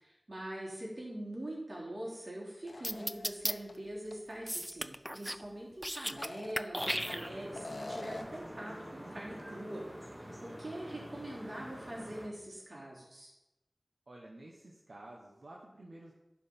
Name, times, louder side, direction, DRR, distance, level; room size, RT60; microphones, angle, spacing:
voice 1, 0.0-13.3, right 1 dB, 60° right, -4 dB, 3.4 m, -43 dB
sound 1, 2.6-3.7 4.1-4.2 6.0-7.1 7.5-8.4, left 2 dB, 75° left, 0.8 m, -44 dB
sound 2, 2.8-3.5 4.5-5.4 5.7-6.3 6.6-7.6, equal, 5° right, 0.4 m, -35 dB
sound 3, 6.8-12.3, equal, 20° right, 1.8 m, -47 dB
voice 2, 14.1-16.1, right 1 dB, 80° right, -2 dB, 1.2 m, -51 dB
11.0 x 5.1 x 5.4 m, 0.94 s
wide cardioid pair, 45°, 0 cm